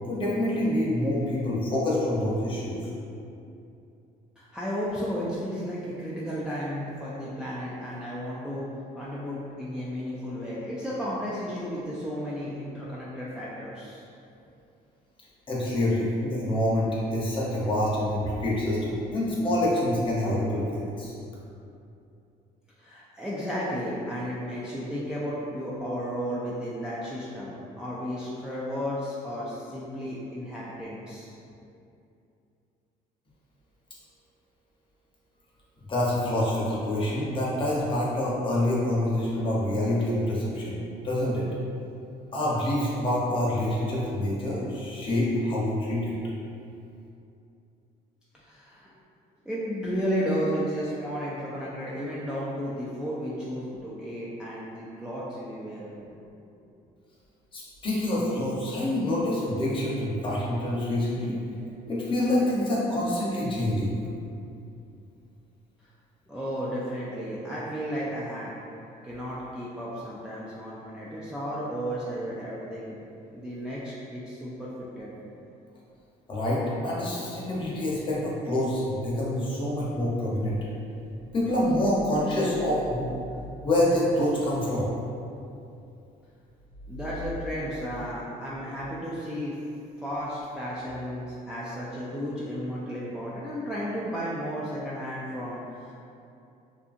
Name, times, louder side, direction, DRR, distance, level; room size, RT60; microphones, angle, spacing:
voice 1, 0.0-2.8 15.5-21.1 35.9-41.5 42.3-46.1 57.5-61.4 61.9-63.9 76.3-80.5 81.3-83.1 83.6-84.9, left 1 dB, 30° left, -6 dB, 0.7 m, -26 dB
voice 2, 4.4-14.1 22.8-31.3 48.3-48.9 49.5-55.9 66.3-68.5 69.0-75.1 86.9-89.6 90.0-95.9, equal, 5° right, -8 dB, 0.3 m, -33 dB
2.6 x 2.5 x 2.4 m, 2.7 s
cardioid pair, 110°, 17 cm